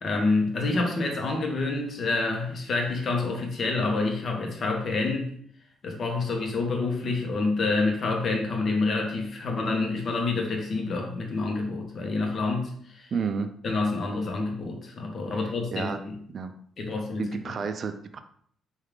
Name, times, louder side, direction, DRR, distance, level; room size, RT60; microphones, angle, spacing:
voice 1, 0.0-5.3 5.8-13.1 13.6-16.1 16.8-17.3, left 3 dB, 50° left, 2 dB, 0.7 m, -27 dB
voice 2, 13.1-13.5 15.3-15.4 15.7-16.0 16.3-16.5 17.2-18.2, right 5 dB, 50° right, 8 dB, 0.3 m, -31 dB
3.4 x 2.3 x 3.2 m, 0.63 s
cardioid pair, 90°, 0 cm